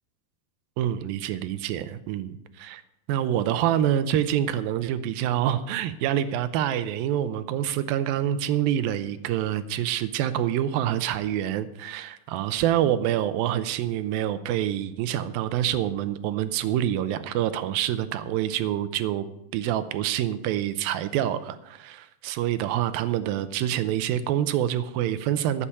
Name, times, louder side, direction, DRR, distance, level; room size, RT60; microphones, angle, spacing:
voice 1, 0.8-2.8 3.1-19.3 19.5-25.7, right 11 dB, 80° right, 12 dB, 2.3 m, -26 dB
13.0 x 8.8 x 5.6 m, 0.86 s
omnidirectional pair, 4.5 m